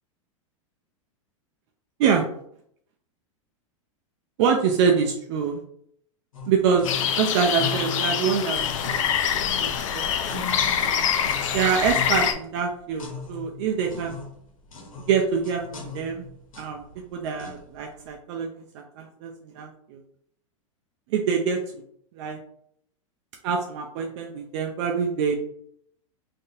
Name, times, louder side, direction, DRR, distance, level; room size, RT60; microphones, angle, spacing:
voice 1, 4.4-5.6 6.5-9.0 9.3-10.1 10.8-11.0 11.5-14.2 15.1-16.2 16.6-16.8 17.1-18.5 18.7-20.0 21.1-21.6 22.2-22.4 23.4-25.4, right 6 dB, 55° right, 2 dB, 0.5 m, -25 dB
sound 1, 6.3-18.0, left 3 dB, 85° left, 1.1 m, -39 dB
sound 2, 6.8-12.3, left 8 dB, 70° left, 0.5 m, -25 dB
3.8 x 2.7 x 2.6 m, 0.69 s
hypercardioid pair, 105°, 17 cm